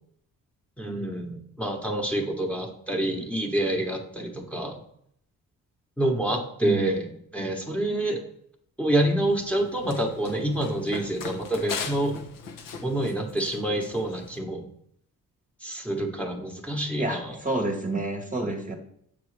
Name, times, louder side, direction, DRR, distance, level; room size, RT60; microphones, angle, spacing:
voice 1, 0.8-4.8 6.0-7.1 7.3-8.2 8.8-12.2 12.8-14.6 15.6-17.4, right 1 dB, 5° left, 2 dB, 1.1 m, -27 dB
voice 2, 6.6-7.0 17.0-18.8, right 2 dB, 25° right, 2 dB, 0.9 m, -29 dB
Run, 9.2-14.4, left 6 dB, 85° left, 0.9 m, -39 dB
7.0 x 4.9 x 3.2 m, 0.68 s
cardioid pair, 90°, 33 cm